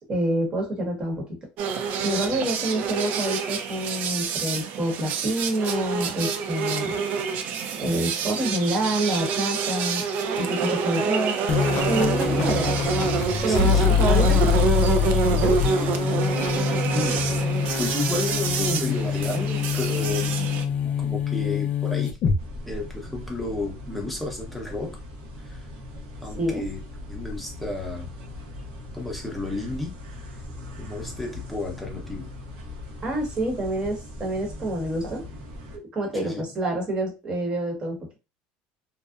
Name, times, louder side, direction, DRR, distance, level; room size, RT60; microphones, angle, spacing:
voice 1, 0.0-1.4 2.0-6.9 7.8-10.0 10.4-11.3 11.9-12.8 13.4-14.6 15.3-15.6 26.3-26.7 33.0-35.2 35.9-38.2, right 1 dB, 30° right, 1 dB, 1.0 m, -27 dB
sound 1, 1.6-20.6, right 6 dB, 55° right, 0.4 m, -27 dB
sound 2, 11.5-22.4, left 7 dB, 45° left, 0.4 m, -24 dB
voice 2, 12.3-12.6 13.5-13.9 15.8-16.2 16.9-17.3 17.8-20.4 20.8-22.2 22.7-24.9 25.5-25.6 26.2-26.8 27.1-28.1 28.9-29.9 30.8-32.3 36.2-36.4, left 2 dB, ahead, 0 dB, 0.7 m, -32 dB
sound 3, 22.4-35.8, left 1 dB, 75° right, 0.7 m, -39 dB
2.6 x 2.0 x 2.4 m, 0.28 s
cardioid pair, 140°, 3 cm